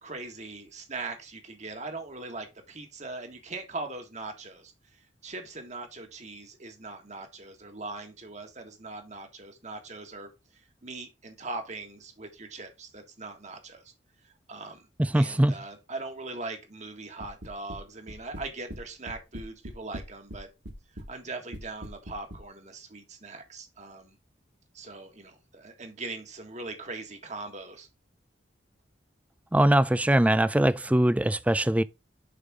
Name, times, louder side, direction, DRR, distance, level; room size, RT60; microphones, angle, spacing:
voice 1, 0.0-13.9 14.2-14.9 15.1-20.5 20.9-24.2 24.7-27.9, right 3 dB, 40° right, 1.8 m, -41 dB
voice 2, 15.0-15.6 29.5-31.8, right 1 dB, 10° right, 0.3 m, -22 dB
sound 1, 17.2-17.8 18.1-18.8 19.1-20.4 20.7-21.1 21.5-22.4, equal, 70° right, 2.0 m, -40 dB
6.7 x 5.4 x 3.6 m
head